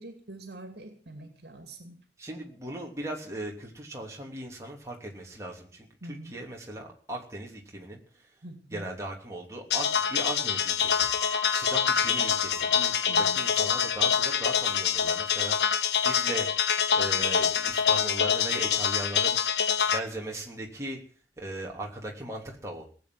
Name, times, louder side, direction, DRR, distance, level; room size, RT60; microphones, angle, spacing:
voice 1, 0.0-2.0 6.0-6.4 8.4-8.9 13.1-13.5, right 1 dB, 65° right, 6 dB, 2.6 m, -45 dB
voice 2, 2.2-8.0 8.7-11.1 11.5-16.5 16.9-19.6 19.9-21.0 21.4-22.8, right 1 dB, 15° right, -1 dB, 3.2 m, -38 dB
sound 1, 9.7-20.0, left 7 dB, 70° left, 1.0 m, -25 dB
Bell, 11.0-17.9, left 3 dB, 20° left, 1.0 m, -43 dB
18.5 x 8.5 x 7.8 m, 0.43 s
head